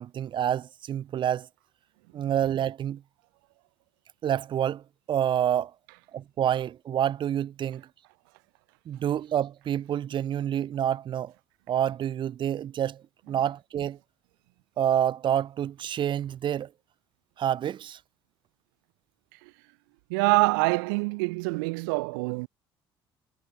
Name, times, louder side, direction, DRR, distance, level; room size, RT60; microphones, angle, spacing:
voice 1, 0.0-1.5 2.1-3.0 4.2-4.8 5.1-5.7 6.1-7.8 8.9-11.3 11.7-14.0 14.8-16.7 17.4-18.0, right 10 dB, 45° right, 0.6 m, -28 dB
voice 2, 20.1-22.5, right 30 dB, 75° right, 1.0 m, -25 dB
hypercardioid pair, 60°, 11 cm